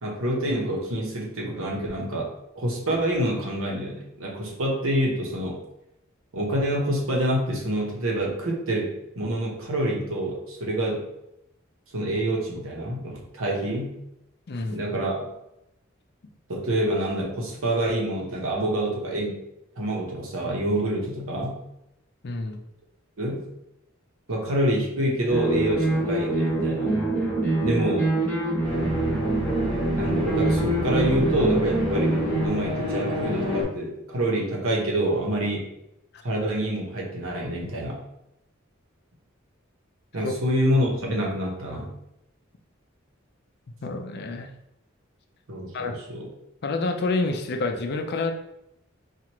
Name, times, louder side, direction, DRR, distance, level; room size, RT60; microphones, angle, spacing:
voice 1, 0.0-2.3 2.5-5.6 6.3-11.0 11.9-14.0 14.7-15.3 16.5-19.4 19.8-21.6 23.2-23.4 24.3-26.9 27.6-28.1 29.9-35.7 36.2-38.0 40.1-41.9 45.5-46.3, right 1 dB, 75° right, -2 dB, 1.0 m, -27 dB
voice 2, 14.5-14.8 22.2-22.6 40.2-40.3 43.8-44.5 45.7-45.9 46.6-48.3, left 3 dB, 55° left, 5 dB, 0.5 m, -28 dB
sound 1, 25.3-32.5, right 2 dB, 10° left, 1.1 m, -25 dB
sound 2, 28.6-33.6, left 2 dB, 25° right, 1.0 m, -29 dB
4.5 x 2.4 x 2.9 m, 0.84 s
head